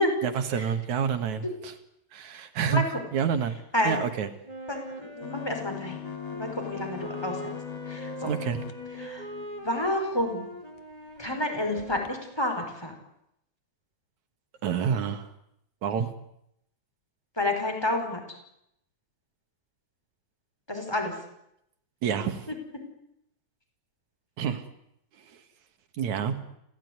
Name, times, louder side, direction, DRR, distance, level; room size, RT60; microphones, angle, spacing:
voice 1, 0.2-1.7 2.1-2.8 3.1-3.6 3.8-4.3 8.2-8.6 14.6-15.3 15.8-16.1 22.0-22.5 24.4-24.7 25.2-25.3 26.0-26.4, right 7 dB, 70° right, 9 dB, 3.1 m, -28 dB
Wind instrument woodwind instrument, 4.4-12.4, right 1 dB, 10° right, 2.8 m, -42 dB
voice 2, 4.7-6.0 6.3-7.4 7.9-8.3 9.0-9.3 9.6-10.5 11.2-12.9 17.4-18.2 20.7-21.1 22.5-22.8, left 1 dB, 5° left, 4 dB, 5.2 m, -29 dB
sound 1, 5.2-10.2 10.8-10.9 11.2-11.4 11.8-12.1, left 14 dB, 75° left, 2.9 m, -40 dB
28.0 x 16.5 x 9.6 m, 0.79 s
omnidirectional pair, 3.4 m